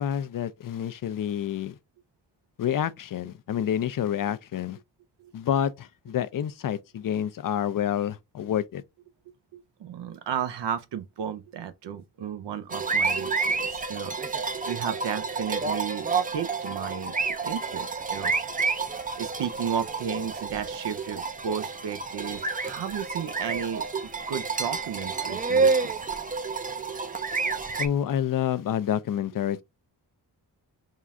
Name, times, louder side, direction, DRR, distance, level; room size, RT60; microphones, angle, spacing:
voice 1, 0.0-1.8 2.6-4.8 5.3-8.8 27.8-29.6, left 10 dB, 55° left, 0.5 m, -28 dB
voice 2, 9.5-14.2 14.7-16.1 16.3-17.2 17.4-18.3 19.2-25.9, right 8 dB, 85° right, 0.7 m, -33 dB
sound 1, 12.7-27.9, right 4 dB, 20° right, 0.5 m, -29 dB
3.7 x 2.4 x 4.2 m
cardioid pair, 95°, 41 cm